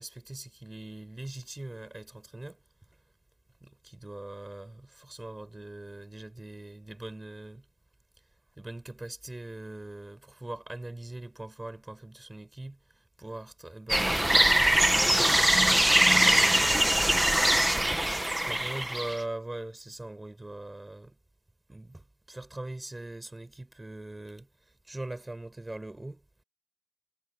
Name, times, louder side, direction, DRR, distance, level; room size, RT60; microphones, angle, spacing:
voice 1, 0.0-2.6 3.6-7.7 8.6-15.3 16.0-17.3 18.4-21.2 21.7-24.5 24.8-26.2, right 2 dB, 40° right, 4.9 m, -41 dB
sound 1, 13.9-19.2, right 1 dB, 20° right, 1.5 m, -23 dB
wide cardioid pair, 55°, 0 cm